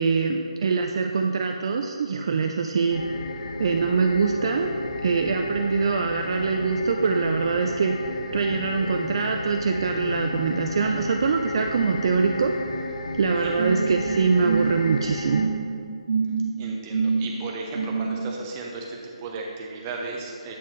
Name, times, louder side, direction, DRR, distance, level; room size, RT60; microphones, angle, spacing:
voice 1, 0.0-3.0 3.6-4.7 5.0-8.0 8.3-12.5 13.1-15.5, right 5 dB, 50° right, 4 dB, 0.3 m, -23 dB
sound 1, 2.9-15.5, left 2 dB, 60° left, 0.6 m, -33 dB
sound 2, 13.6-18.4, right 5 dB, 75° right, 1.3 m, -27 dB
voice 2, 16.6-20.5, right 3 dB, 20° right, -1 dB, 0.7 m, -35 dB
8.3 x 4.2 x 3.1 m, 2.3 s
hypercardioid pair, 165°, 3 cm